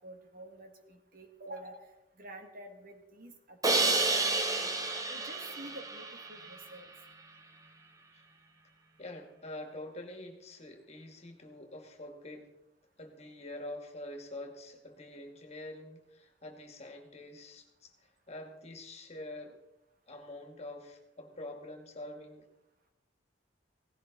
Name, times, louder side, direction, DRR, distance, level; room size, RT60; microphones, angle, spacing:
voice 1, 0.0-1.9 2.2-4.7 5.1-6.9, right 1 dB, 50° right, 5 dB, 2.0 m, -49 dB
Crash cymbal, 3.6-6.7, right 3 dB, 20° right, 1.3 m, -30 dB
voice 2, 9.0-12.5 13.0-19.6 20.1-22.5, left 1 dB, 35° left, 4 dB, 2.3 m, -46 dB
17.5 x 16.0 x 4.1 m, 0.90 s
head